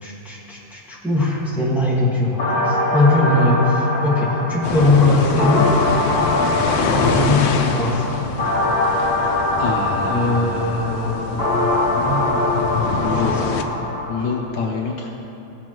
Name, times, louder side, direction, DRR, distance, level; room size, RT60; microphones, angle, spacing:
voice 1, 0.0-5.8 6.9-8.1 10.1-12.4 12.7-13.7, left 2 dB, ahead, -6 dB, 1.5 m, -21 dB
sound 1, 2.4-14.4, left 1 dB, 30° left, 2.0 m, -23 dB
sound 2, 4.6-13.6, left 5 dB, 85° left, 1.5 m, -25 dB
voice 2, 7.0-7.4 8.7-9.1 9.6-10.7 12.9-13.4 14.1-15.1, left 5 dB, 65° left, 0 dB, 1.4 m, -26 dB
17.0 x 7.2 x 3.0 m, 2.8 s
omnidirectional pair, 2.2 m